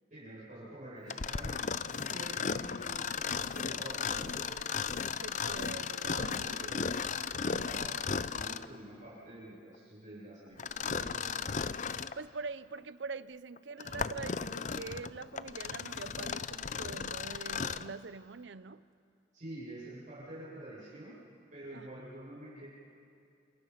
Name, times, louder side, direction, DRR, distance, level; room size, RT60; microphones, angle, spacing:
voice 1, 0.1-4.6 6.4-6.9 7.4-11.2 19.3-21.1 21.5-22.6, right 1 dB, 45° right, -8 dB, 7.4 m, -47 dB
Mechanisms, 1.1-8.8 10.6-12.2 12.8-12.9 13.6-17.9, left 6 dB, 40° left, 0.5 m, -35 dB
voice 2, 5.2-6.8 7.5-7.9 12.2-18.8 21.7-21.9, right 4 dB, 80° right, 16 dB, 0.6 m, -44 dB
28.5 x 27.0 x 5.8 m, 2.5 s
head